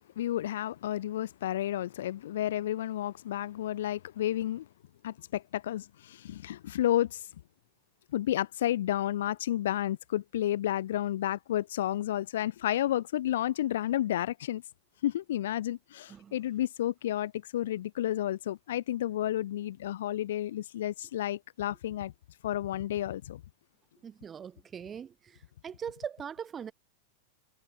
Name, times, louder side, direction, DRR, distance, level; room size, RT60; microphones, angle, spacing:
voice 1, 0.2-4.7 5.0-7.2 8.1-14.6 15.0-22.1 22.4-23.4, left 12 dB, 60° left, 0.8 m, -31 dB
voice 2, 24.0-25.4 25.6-26.7, right 7 dB, 20° right, 1.4 m, -41 dB
figure-of-eight pair, 90°, 0 cm